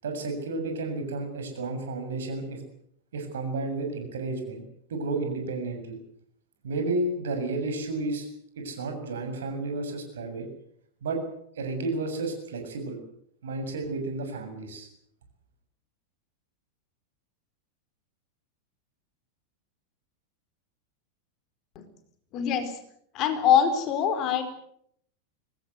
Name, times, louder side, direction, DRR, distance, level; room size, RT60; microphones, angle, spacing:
voice 1, 0.0-2.6 3.1-4.6 4.9-6.0 6.6-8.3 8.6-10.5 11.0-11.2 11.6-13.0 13.4-14.9, right 3 dB, 65° right, 6 dB, 7.0 m, -32 dB
voice 2, 22.3-22.7 23.1-24.4, left 8 dB, 35° left, 8 dB, 4.3 m, -23 dB
24.0 x 19.5 x 8.1 m, 0.70 s
figure-of-eight pair, 90°, 0 cm